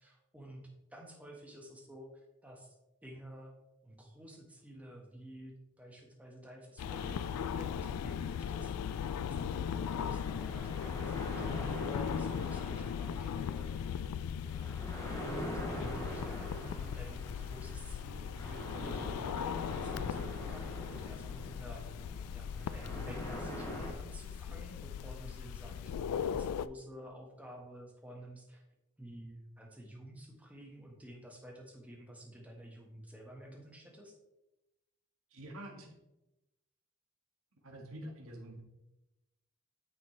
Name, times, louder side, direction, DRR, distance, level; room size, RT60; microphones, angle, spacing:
voice 1, 0.0-2.7 3.0-3.6 3.8-8.9 9.2-14.1 14.8-15.1 15.5-28.6 29.0-34.2, equal, 5° right, 0 dB, 1.4 m, -51 dB
sound 1, 6.8-26.7, left 8 dB, 85° left, 0.3 m, -38 dB
sound 2, 6.9-23.9, left 1 dB, 15° left, 1.8 m, -44 dB
voice 2, 35.3-35.9 37.6-38.6, right 1 dB, 65° right, 1 dB, 1.5 m, -46 dB
9.3 x 6.3 x 3.2 m, 0.95 s
head